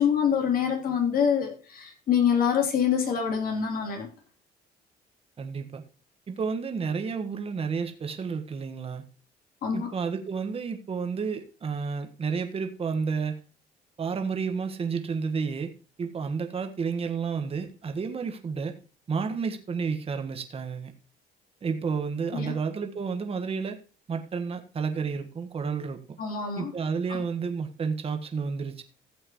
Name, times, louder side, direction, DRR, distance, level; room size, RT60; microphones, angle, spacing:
voice 1, 0.0-4.1 9.6-9.9 22.3-22.5 26.2-26.7 27.1-27.2, left 7 dB, 60° left, 3.4 m, -25 dB
voice 2, 5.4-5.8 6.3-9.0 9.7-13.4 14.0-15.7 16.0-18.8 19.1-20.9 21.6-23.8 24.1-26.2 26.6-28.8, right 5 dB, 35° right, 1.5 m, -31 dB
15.0 x 7.9 x 3.1 m
cardioid pair, 110°, 17 cm